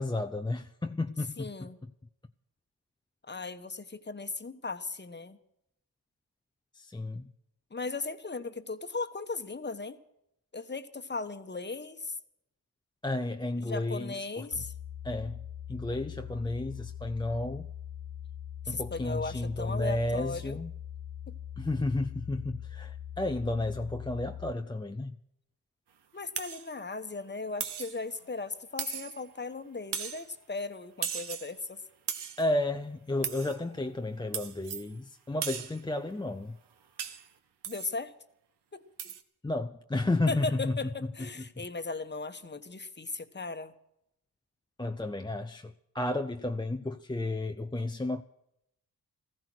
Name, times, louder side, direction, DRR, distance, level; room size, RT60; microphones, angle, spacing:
voice 1, 0.0-1.7 6.7-7.3 13.0-14.6 15.0-15.4 15.7-17.7 18.7-20.7 21.6-25.2 32.4-36.6 39.4-40.7 44.8-48.2, left 2 dB, 10° left, 0.6 m, -32 dB
voice 2, 1.4-1.8 3.3-5.4 7.7-10.0 10.5-12.1 13.6-14.7 18.7-20.6 21.3-21.4 26.1-31.8 37.7-38.1 38.7-39.1 40.3-40.9 41.2-43.7, left 3 dB, 25° left, 1.2 m, -37 dB
sound 1, 14.5-24.5, left 10 dB, 50° left, 0.7 m, -42 dB
sound 2, 26.4-26.7 27.6-28.0 28.8-29.3 29.9-30.3 31.0-31.6 32.1-32.5 33.2-33.6 34.3-34.9 35.4-35.8 37.0-37.3 37.6-38.0 39.0-39.2, right 8 dB, 90° right, 1.1 m, -37 dB
15.0 x 15.0 x 6.2 m
cardioid pair, 65°, 40 cm